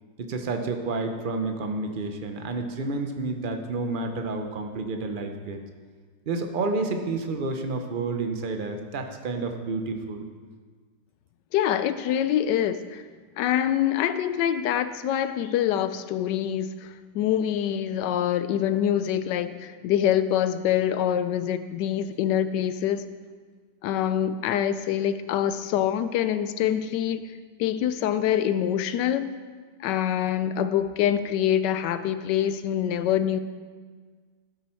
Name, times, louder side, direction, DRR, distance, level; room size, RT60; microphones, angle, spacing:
voice 1, 0.2-5.6 6.3-10.2, right 3 dB, 50° right, 5 dB, 0.6 m, -30 dB
voice 2, 11.5-13.0 13.4-23.0 23.8-27.3 27.6-29.3 29.8-33.4, left 10 dB, 75° left, 11 dB, 1.2 m, -25 dB
12.0 x 7.8 x 4.5 m, 1.5 s
omnidirectional pair, 2.0 m